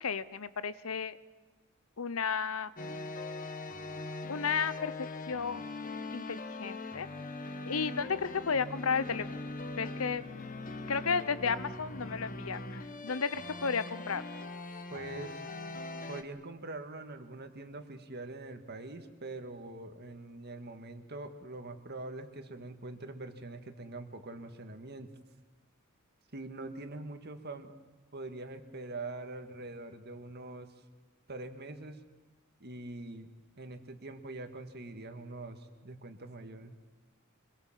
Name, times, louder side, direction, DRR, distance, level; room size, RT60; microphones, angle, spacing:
voice 1, 0.0-1.2 2.0-2.7 4.3-5.6 6.1-7.1 7.7-9.3 9.8-10.2 10.9-14.2, left 5 dB, 85° left, 16 dB, 0.9 m, -33 dB
sound 1, 2.8-16.2, left 2 dB, 40° left, 1.4 m, -41 dB
voice 2, 14.9-15.4 16.1-25.1 26.3-27.7 28.1-30.7 31.3-32.0 32.6-33.3 33.6-36.7, right 2 dB, 50° right, 7 dB, 1.9 m, -43 dB
25.5 x 22.0 x 7.5 m, 1.3 s
head